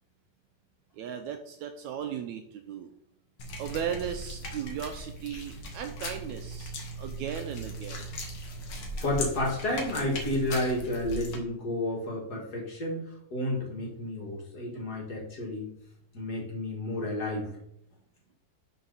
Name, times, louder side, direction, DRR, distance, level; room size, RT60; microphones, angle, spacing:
voice 1, 1.0-2.9 3.6-8.1, right 8 dB, 80° right, 6 dB, 1.7 m, -36 dB
sound 1, 3.4-11.4, equal, 55° left, 1.8 m, -38 dB
voice 2, 9.0-13.0 13.3-15.7 16.1-17.5, left 1 dB, 35° left, -2 dB, 2.1 m, -31 dB
11.0 x 4.1 x 4.0 m, 0.75 s
omnidirectional pair, 3.8 m